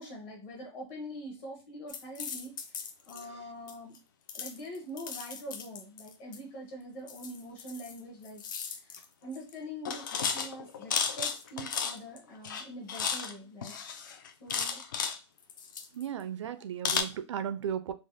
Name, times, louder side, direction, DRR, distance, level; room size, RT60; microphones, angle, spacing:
voice 1, 0.0-4.0 4.3-8.4 8.7-13.8 14.4-14.8, equal, 25° left, 0 dB, 0.8 m, -44 dB
sound 1, 1.9-3.2 3.7-4.0 4.3-6.4 7.1-8.0 8.2-9.0 9.3-9.5 9.8-12.2 12.4-13.3 13.6-15.2 15.5-16.2 16.8-17.0, left 6 dB, 40° left, 0.4 m, -35 dB
voice 2, 15.9-17.9, right 9 dB, 75° right, 11 dB, 0.4 m, -35 dB
3.3 x 2.1 x 2.6 m, 0.29 s
hypercardioid pair, 175°, 16 cm